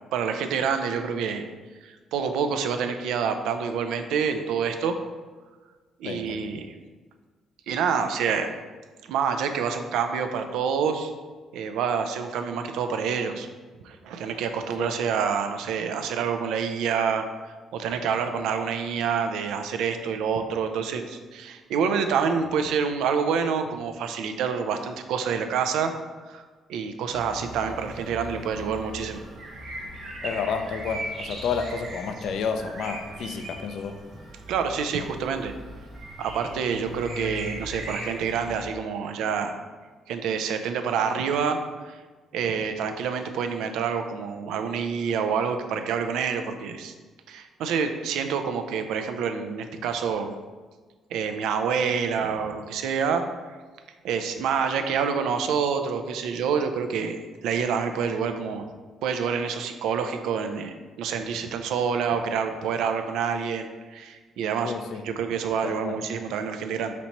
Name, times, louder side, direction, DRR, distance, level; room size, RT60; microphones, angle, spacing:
voice 1, 0.1-1.5 1.8-5.0 6.0-6.7 7.7-8.5 9.1-11.1 11.5-13.5 13.8-17.2 17.7-25.9 26.3-26.4 26.7-29.2 34.5-35.5 36.2-39.5 40.1-41.6 41.9-42.0 42.3-46.9 47.3-50.4 51.1-53.2 54.0-57.2 57.4-58.7 59.0-64.7 65.0-66.9, right 6 dB, 90° right, 7 dB, 0.4 m, -27 dB
voice 2, 6.0-6.5 14.8-15.0 30.2-34.0 64.6-65.0 65.6-66.0, left 6 dB, 70° left, 7 dB, 0.4 m, -30 dB
sound 1, 27.1-38.6, right 1 dB, 55° right, 1.1 m, -39 dB
4.4 x 4.1 x 2.9 m, 1.4 s
cardioid pair, 115°, 0 cm